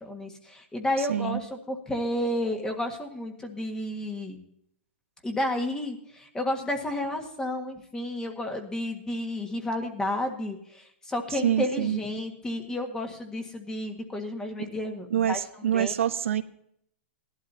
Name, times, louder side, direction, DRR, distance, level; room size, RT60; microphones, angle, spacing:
voice 1, 0.0-4.4 5.2-15.9, left 1 dB, 10° left, 4 dB, 1.7 m, -31 dB
voice 2, 1.0-1.4 11.3-12.0 14.6-14.7 15.1-16.4, right 10 dB, 90° right, 10 dB, 0.9 m, -26 dB
17.0 x 11.5 x 2.8 m, 0.71 s
hypercardioid pair, 145°, 7 cm